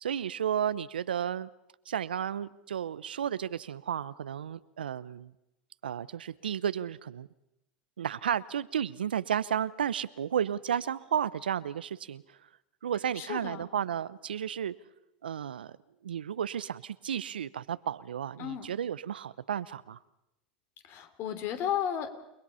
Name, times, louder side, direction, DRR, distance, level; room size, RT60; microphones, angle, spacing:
voice 1, 0.0-1.5 1.9-5.3 5.8-7.3 8.0-12.4 12.8-14.7 15.2-15.8 16.0-20.0, right 9 dB, 85° right, 17 dB, 0.7 m, -33 dB
voice 2, 13.1-13.7 18.4-18.7 20.8-22.2, left 9 dB, 50° left, 9 dB, 3.3 m, -34 dB
29.5 x 20.5 x 5.6 m, 0.88 s
hypercardioid pair, 95°, 5 cm